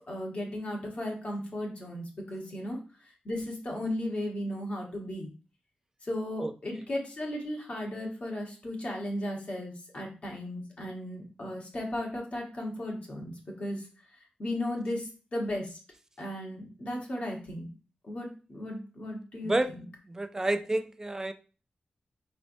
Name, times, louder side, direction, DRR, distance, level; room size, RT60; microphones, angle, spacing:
voice 1, 0.1-2.8 3.2-5.3 6.0-13.8 14.4-15.8 16.2-17.7 18.1-19.5, left 1 dB, 45° left, 1.2 m, -35 dB
voice 2, 6.4-6.8 19.4-19.7 20.1-21.3, right 2 dB, 15° right, 0.3 m, -30 dB
5.0 x 3.3 x 2.6 m
wide cardioid pair, 145°, 3 cm